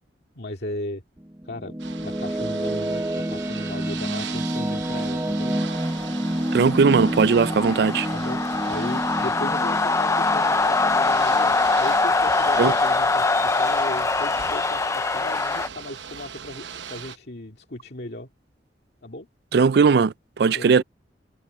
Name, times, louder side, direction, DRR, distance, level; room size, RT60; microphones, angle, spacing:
voice 1, 0.4-1.0 1.4-5.6 8.1-8.4 8.7-18.3 19.0-19.3 20.5-20.8, left 1 dB, 65° left, 2.3 m, -36 dB
sound 1, 1.2-12.5, right 1 dB, 15° right, 0.8 m, -29 dB
Ocean / Boat Water vehicle, 1.8-17.2, right 7 dB, 90° right, 0.9 m, -39 dB
sound 2, 5.8-15.7, left 3 dB, 15° left, 0.4 m, -23 dB
voice 2, 6.5-8.1 12.6-12.7 19.5-20.8, right 5 dB, 60° right, 0.4 m, -18 dB
head